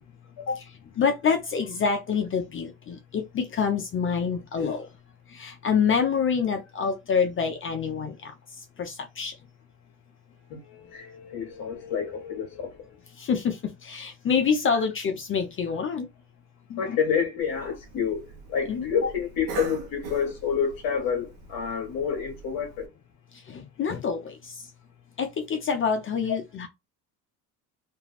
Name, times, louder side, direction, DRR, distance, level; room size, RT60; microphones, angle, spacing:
voice 1, 1.0-4.9 5.3-9.4 13.1-16.1 18.7-18.9 23.3-24.7 25.2-26.7, left 6 dB, 30° left, 0.5 m, -27 dB
voice 2, 10.5-12.8 16.7-18.2 18.5-22.9, left 7 dB, 55° left, 0.9 m, -28 dB
Cough, 17.4-22.9, right 5 dB, 75° right, 0.9 m, -42 dB
2.5 x 2.2 x 3.3 m
supercardioid pair, 90°, 41 cm